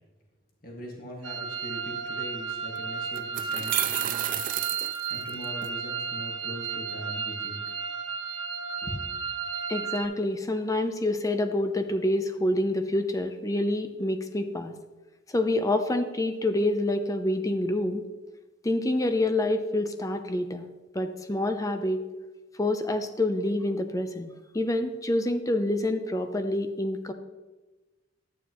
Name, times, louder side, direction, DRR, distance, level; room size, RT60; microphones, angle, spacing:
voice 1, 0.6-4.4 5.1-7.6 8.8-9.0, equal, 50° left, -1 dB, 1.9 m, -41 dB
sound 1, 1.2-10.0, right 6 dB, 80° right, 1.2 m, -33 dB
sound 2, 2.5-2.6 3.2-5.7, right 13 dB, 45° right, 0.3 m, -31 dB
voice 2, 9.7-14.7 15.3-18.0 18.6-20.7 20.9-22.0 22.6-27.1, left 1 dB, 20° left, 8 dB, 0.7 m, -27 dB
11.5 x 9.1 x 3.0 m, 1.2 s
head